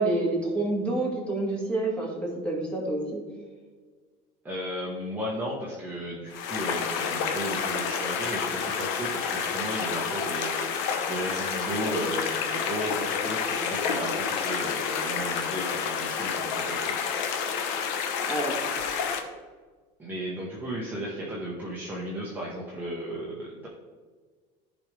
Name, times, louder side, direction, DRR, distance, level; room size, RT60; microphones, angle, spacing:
voice 1, 0.0-3.2 18.3-18.6, right 2 dB, 5° left, -3 dB, 2.3 m, -28 dB
voice 2, 4.4-17.7 20.0-23.7, equal, 10° right, -5 dB, 1.3 m, -35 dB
sound 1, 6.3-19.2, left 6 dB, 70° left, 1.0 m, -29 dB
14.5 x 5.3 x 3.4 m, 1.5 s
cardioid pair, 165°, 20 cm